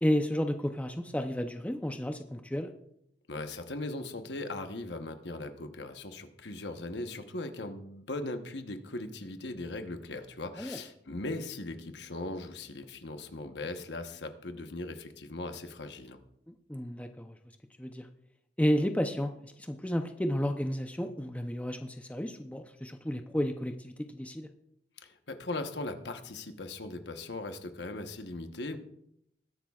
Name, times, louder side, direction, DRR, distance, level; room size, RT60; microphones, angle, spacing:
voice 1, 0.0-2.7 10.6-10.8 16.5-17.4 17.8-18.1 18.6-24.5, equal, 10° left, 6 dB, 0.6 m, -32 dB
voice 2, 3.3-16.2 25.0-28.8, left 2 dB, 70° left, 7 dB, 1.1 m, -39 dB
21.0 x 10.5 x 2.4 m, 0.76 s
head